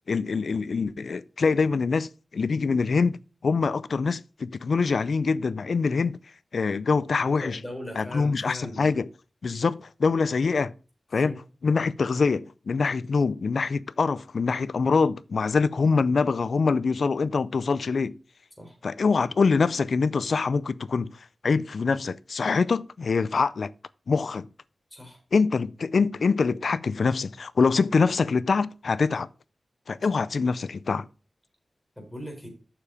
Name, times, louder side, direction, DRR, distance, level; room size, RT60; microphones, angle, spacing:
voice 1, 0.1-6.2 6.5-7.6 8.0-9.1 9.4-10.7 11.1-18.1 18.8-21.1 21.4-23.7 24.1-24.5 25.3-29.3 29.9-31.1, left 4 dB, 75° left, 0.4 m, -24 dB
voice 2, 7.4-9.0 9.5-9.7 11.2-11.4 18.6-18.8 24.9-25.2 32.0-32.5, left 1 dB, 5° left, 4.0 m, -39 dB
7.1 x 6.9 x 5.0 m
wide cardioid pair, 85°, 0 cm